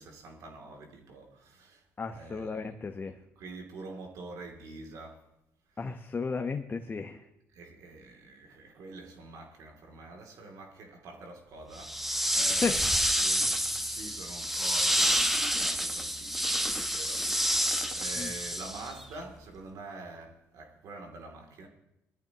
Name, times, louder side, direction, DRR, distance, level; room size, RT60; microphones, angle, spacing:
voice 1, 0.0-1.8 2.1-2.7 3.4-5.2 7.5-17.6 17.9-21.7, right 3 dB, 70° right, 2.9 m, -46 dB
voice 2, 2.0-3.2 5.8-7.3 12.6-12.8 18.2-18.3, left 4 dB, 30° left, 1.0 m, -34 dB
sound 1, 11.8-19.0, equal, 5° right, 1.2 m, -28 dB
19.5 x 13.5 x 3.0 m
supercardioid pair, 75°, 6 cm